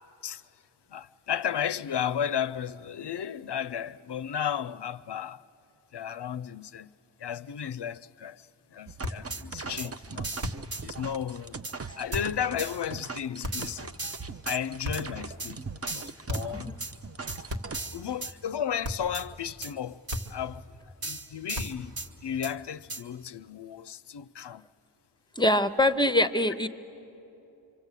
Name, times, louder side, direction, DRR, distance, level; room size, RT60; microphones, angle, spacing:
voice 1, 0.9-5.4 5.9-6.9 7.2-10.3 10.8-11.6 11.9-13.9 14.4-16.8 17.4-17.5 17.9-20.0 20.3-20.7 21.0-21.9 22.2-24.7, left 9 dB, 60° left, 0.5 m, -34 dB
sound 1, 8.9-17.8, right 4 dB, 30° right, 0.5 m, -40 dB
sound 2, 9.0-9.3 10.4-10.8 12.1-12.4 13.4-13.8 14.8-15.2 16.3-16.6 17.5-17.9 18.8-19.2 20.1-20.5 21.5-21.9, left 1 dB, 70° right, 1.9 m, -35 dB
sound 3, 9.3-9.4 9.8-9.9 10.2-10.8 11.6-11.8 12.1-12.2 12.6-12.8 13.5-14.6 14.9-15.0 15.4-15.5 15.9-16.4 16.8-16.9 17.3-17.4 17.7-18.3 19.1-19.3 19.6-19.7 20.1-20.3 21.0-22.1 22.4-22.5 22.9-23.0, right 2 dB, 50° right, 1.6 m, -37 dB
voice 2, 25.4-26.7, left 1 dB, 10° left, 0.7 m, -23 dB
25.5 x 25.0 x 8.2 m
wide cardioid pair, 50°, 47 cm